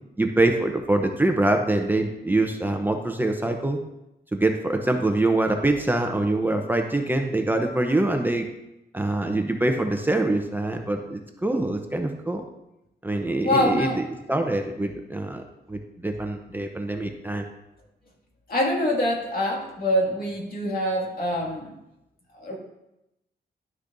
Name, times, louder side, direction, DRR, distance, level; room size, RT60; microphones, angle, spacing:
voice 1, 0.2-3.8 4.3-8.5 8.9-12.4 13.0-14.0 14.3-15.4 15.7-17.4, right 2 dB, 10° right, 4 dB, 0.7 m, -24 dB
voice 2, 13.4-14.0 18.5-21.7 22.4-22.5, left 1 dB, 55° left, -2 dB, 2.2 m, -24 dB
11.5 x 6.3 x 2.6 m, 0.90 s
cardioid pair, 90°, 18 cm